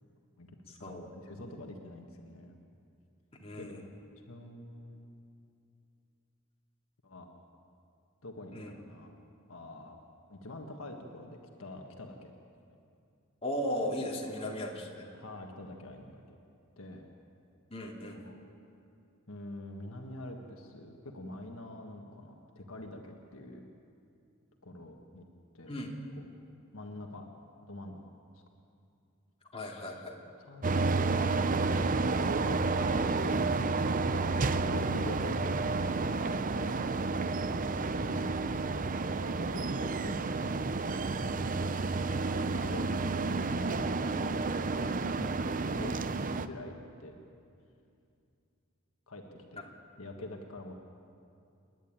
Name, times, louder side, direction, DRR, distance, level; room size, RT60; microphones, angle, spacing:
voice 1, 0.8-2.6 3.5-3.9 4.3-5.1 7.0-7.3 8.2-9.2 9.5-10.0 10.3-12.3 12.7-12.8 14.5-16.4 16.8-17.1 18.1-18.5 19.3-23.7 24.6-25.3 25.5-25.8 26.2-26.3 26.7-27.2 27.7-28.4 30.4-31.5 31.8-35.4 35.6-37.1 37.9-38.3 39.0-40.7 41.3-41.6 42.3-44.7 45.0-45.3 45.6-45.9 46.2-47.1 49.1-49.6 50.0-50.7, left 1 dB, 65° left, 3 dB, 1.5 m, -46 dB
voice 2, 3.4-3.8 8.5-8.7 13.4-15.1 17.7-18.2 25.7-25.9 29.5-30.2 36.1-36.3, left 1 dB, 25° left, -1 dB, 2.7 m, -36 dB
sound 1, 30.6-46.5, right 3 dB, 40° right, 0.6 m, -30 dB
29.0 x 10.5 x 9.0 m, 2.5 s
head